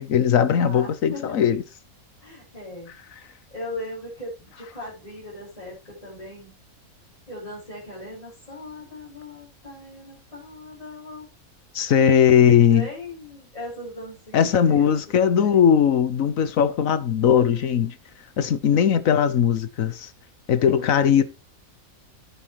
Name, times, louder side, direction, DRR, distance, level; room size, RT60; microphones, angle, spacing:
voice 1, 0.0-1.6 11.7-12.9 14.3-17.9 18.4-20.1 20.5-21.2, left 8 dB, 65° left, 1.4 m, -19 dB
voice 2, 0.5-1.3 2.2-2.9 3.2-6.6 7.3-11.3 12.7-15.7 20.7-21.2, left 1 dB, 25° left, 6.9 m, -39 dB
10.0 x 9.8 x 3.1 m
omnidirectional pair, 1.5 m